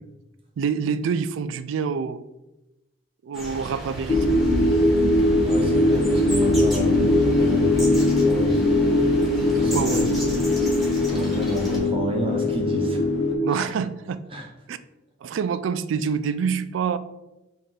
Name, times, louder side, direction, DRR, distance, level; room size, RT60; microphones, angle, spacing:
voice 1, 0.6-2.2 3.2-4.4 9.5-10.0 13.4-14.2 14.7-14.8 15.2-17.0, right 6 dB, 85° right, 13 dB, 0.3 m, -26 dB
sound 1, 3.3-11.8, equal, ahead, 1.0 m, -34 dB
sound 2, 4.1-13.4, left 1 dB, 90° left, 1.0 m, -20 dB
voice 2, 5.4-8.6 9.6-10.4 11.1-13.1 13.5-13.8 14.3-14.5, right 1 dB, 30° right, 2 dB, 0.5 m, -31 dB
5.7 x 2.5 x 3.6 m, 0.98 s
head